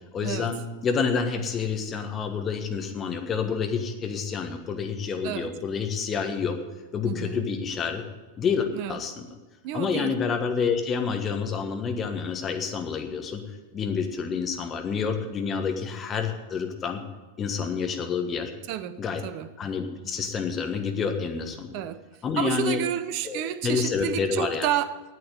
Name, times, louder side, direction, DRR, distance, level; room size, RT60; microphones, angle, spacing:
voice 1, 0.1-6.6 6.9-8.0 8.4-9.3 9.7-13.4 13.7-17.0 17.4-18.5 19.0-19.2 19.6-21.8 22.2-22.8 23.2-24.7, left 6 dB, 25° left, 1.4 m, -28 dB
voice 2, 7.0-7.4 8.7-9.0 9.6-10.2 18.7-19.5 21.7-22.0 22.4-25.0, right 10 dB, 45° right, 0.6 m, -30 dB
9.2 x 8.7 x 9.0 m
figure-of-eight pair, 90°, 0 cm